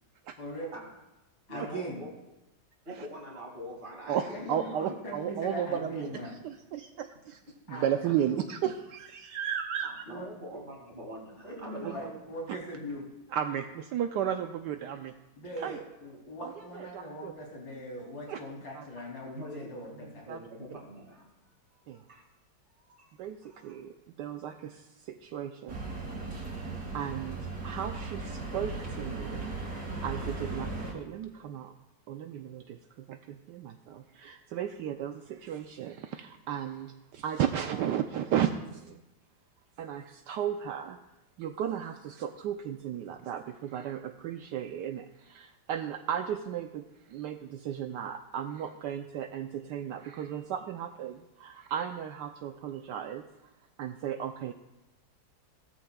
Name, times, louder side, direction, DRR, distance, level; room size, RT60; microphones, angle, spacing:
voice 1, 0.4-0.7 1.5-2.0 4.3-6.4 7.7-7.9 10.1-10.6 11.4-13.1 15.3-20.3, equal, 85° left, -3 dB, 3.6 m, -40 dB
voice 2, 1.5-2.1 2.9-5.1 5.6-5.7 7.7-8.4 9.8-12.1 19.3-21.2 21.9-22.2 23.0-23.7, equal, 30° right, -2 dB, 2.5 m, -45 dB
voice 3, 4.1-6.1 6.4-7.4 7.7-10.0 11.8-11.9 13.3-15.1 15.6-15.8 16.4-17.3 18.3-18.4 18.7-18.8 20.3-20.4 21.9-22.0 23.2-25.9 26.6-29.5 29.8-31.7 32.1-39.0 39.8-41.0 41.4-46.8 47.1-53.2 53.8-54.5, right 9 dB, 75° right, 6 dB, 1.2 m, -34 dB
sound 1, 25.7-30.9, right 3 dB, 55° right, 3.1 m, -37 dB
17.5 x 13.5 x 2.3 m, 0.95 s
omnidirectional pair, 2.0 m